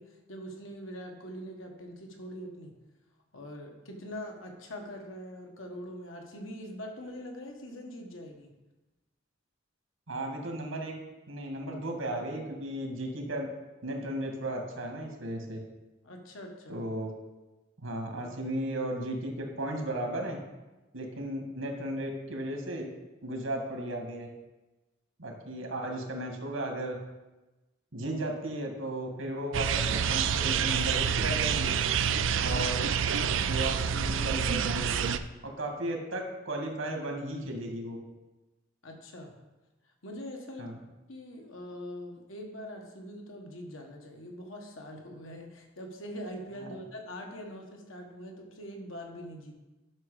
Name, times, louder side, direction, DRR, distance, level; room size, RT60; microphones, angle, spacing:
voice 1, 0.0-2.8 3.3-8.5 16.0-16.8 38.8-39.4 40.0-40.7 41.1-49.6, equal, 80° left, 2 dB, 1.5 m, -43 dB
voice 2, 10.1-10.9 11.3-13.5 13.8-15.6 16.7-17.2 17.8-20.4 20.9-22.9 23.2-24.3 25.2-27.0 27.9-31.7 32.4-32.8 33.5-35.1 35.4-38.0 40.6-40.7 46.6-46.8, right 1 dB, 85° right, 2 dB, 2.1 m, -35 dB
sound 1, 29.5-35.2, right 7 dB, 70° right, 0.5 m, -27 dB
10.5 x 6.1 x 5.0 m, 1.1 s
head